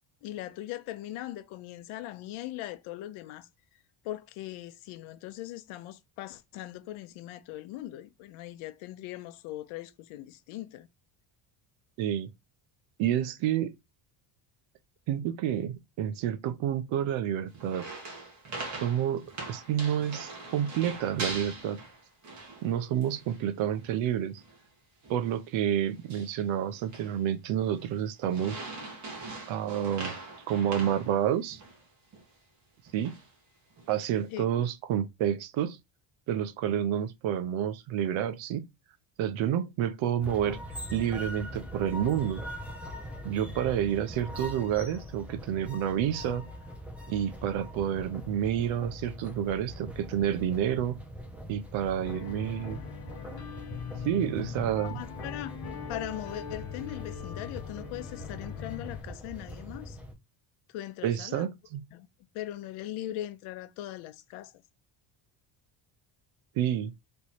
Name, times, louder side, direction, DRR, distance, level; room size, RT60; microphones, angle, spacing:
voice 1, 0.2-3.5 4.0-10.9 34.3-34.7 54.8-55.6 55.9-60.0 60.7-61.5 61.9-62.1 62.3-64.5, left 14 dB, 80° left, 0.7 m, -40 dB
voice 2, 12.0-12.3 13.0-13.7 15.1-17.9 18.8-21.8 22.6-24.4 25.1-28.6 29.5-30.1 30.5-31.6 32.9-33.2 33.9-35.8 36.3-38.7 39.2-40.6 40.9-42.4 43.2-46.4 47.1-51.0 51.5-52.8 54.0-55.0 61.0-61.8 66.6-66.9, right 10 dB, 70° right, 0.7 m, -29 dB
sound 1, 17.5-22.7 23.0-23.4 23.8-24.0 24.4-24.7 25.0-25.3 25.9-26.4 26.7-27.2 27.6-27.9 28.3-31.8 32.1-32.2 32.9-33.3 33.8-34.2, right 3 dB, 35° right, 1.4 m, -42 dB
sound 2, 40.2-60.1, equal, 5° right, 0.5 m, -42 dB
sound 3, 52.0-59.0, left 8 dB, 45° left, 1.0 m, -41 dB
3.4 x 3.0 x 4.2 m
cardioid pair, 160°, 49 cm